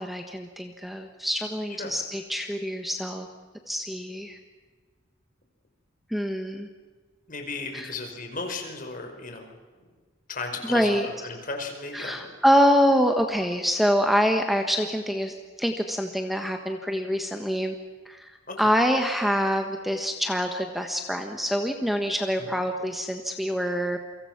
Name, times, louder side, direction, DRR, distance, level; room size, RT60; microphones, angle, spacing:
voice 1, 0.0-3.3 3.7-4.4 6.1-6.7 7.7-7.9 10.7-11.1 11.9-17.8 18.0-18.3 18.6-24.0, equal, ahead, 4 dB, 1.5 m, -25 dB
voice 2, 7.3-9.6 10.3-12.3 18.5-18.6 22.4-22.5, left 3 dB, 45° left, 4 dB, 5.0 m, -35 dB
29.0 x 24.5 x 6.1 m, 1.5 s
head